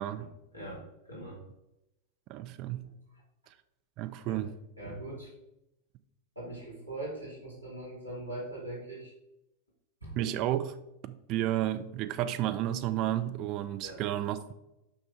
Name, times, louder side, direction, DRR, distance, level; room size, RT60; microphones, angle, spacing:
voice 1, 0.2-1.4 4.3-4.4 4.8-5.3 6.3-9.1 10.0-10.3 13.8-14.0, right 1 dB, 90° right, 2.7 m, -41 dB
voice 2, 2.3-2.9 4.0-4.5 10.2-10.7 11.0-14.5, right 13 dB, 40° right, 0.6 m, -32 dB
6.2 x 5.8 x 4.6 m
figure-of-eight pair, 90°, 0 cm